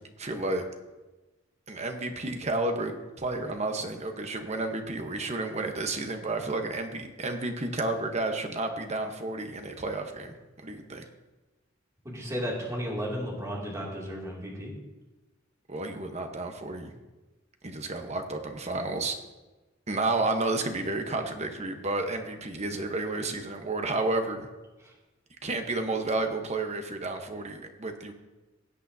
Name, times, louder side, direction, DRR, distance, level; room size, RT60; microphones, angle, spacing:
voice 1, 0.2-0.6 1.7-11.0 15.7-16.9 17.6-19.2 19.9-24.5 25.4-28.1, right 2 dB, 35° right, 5 dB, 1.0 m, -31 dB
voice 2, 12.0-14.7, equal, 15° right, -4 dB, 2.5 m, -34 dB
16.5 x 8.3 x 2.8 m, 1.1 s
head